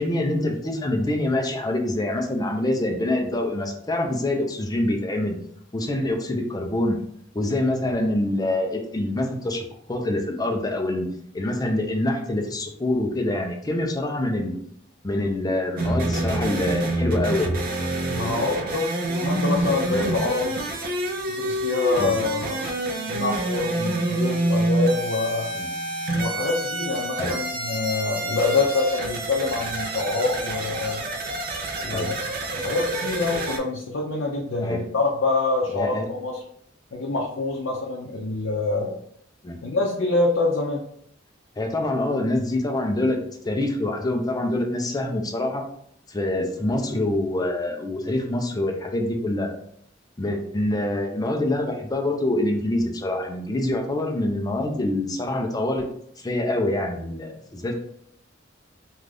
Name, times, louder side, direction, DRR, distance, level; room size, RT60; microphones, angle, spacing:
voice 1, 0.0-5.4 5.7-7.0 7.3-11.1 11.3-14.5 15.0-17.6 18.3-18.4 19.9-20.0 22.0-22.2 25.5-25.7 27.2-27.3 31.9-32.1 34.6-34.8 35.7-36.1 39.4-39.6 41.6-45.6 46.1-49.5 50.2-55.9 56.2-57.7, left 1 dB, 20° left, 3 dB, 0.4 m, -25 dB
sound 1, 15.8-33.6, right 1 dB, 50° right, 0.5 m, -27 dB
voice 2, 18.1-20.6 21.3-22.7 23.1-25.5 26.1-31.0 31.8-32.1 32.6-36.4 36.9-39.0 39.6-40.8, left 3 dB, 85° left, -1 dB, 0.5 m, -26 dB
2.5 x 2.3 x 3.3 m, 0.67 s
head